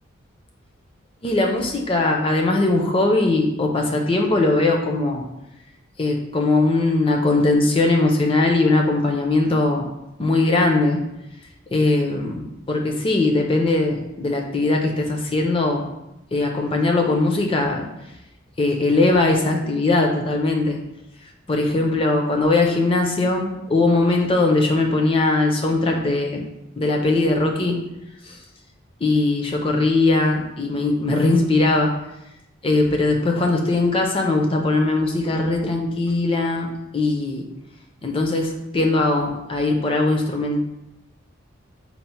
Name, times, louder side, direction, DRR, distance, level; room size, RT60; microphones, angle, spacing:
voice 1, 1.2-5.2 6.0-9.9 10.2-11.0 11.7-15.9 16.3-17.9 18.6-20.8 21.5-26.5 26.8-27.8 28.3-28.4 29.0-31.9 32.6-37.5 38.0-40.6, left 2 dB, 25° left, 2 dB, 0.4 m, -20 dB
4.1 x 2.0 x 4.3 m, 0.89 s
head